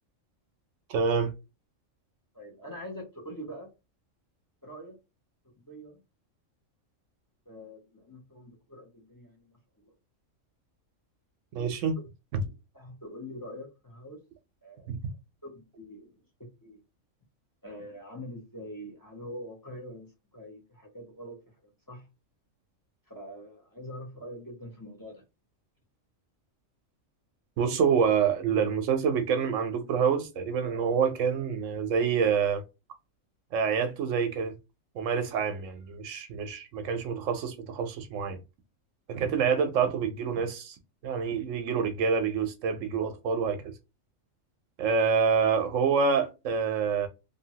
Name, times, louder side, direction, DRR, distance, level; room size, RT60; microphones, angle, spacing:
voice 1, 0.9-1.3 11.5-12.0 12.3-12.4 14.9-15.0 27.6-32.6 33.5-34.6 34.9-38.4 39.1-40.8 41.0-43.7 44.8-47.1, right 6 dB, 75° right, 0.9 m, -27 dB
voice 2, 2.3-3.7 4.6-4.9 5.7-6.0 7.5-9.5 9.8-9.9 12.4-14.2 14.6-14.9 15.5-16.1 16.4-16.8 17.6-21.4 21.9-22.0 23.1-25.2, equal, 15° left, 1.0 m, -44 dB
2.7 x 2.6 x 2.8 m
omnidirectional pair, 1.4 m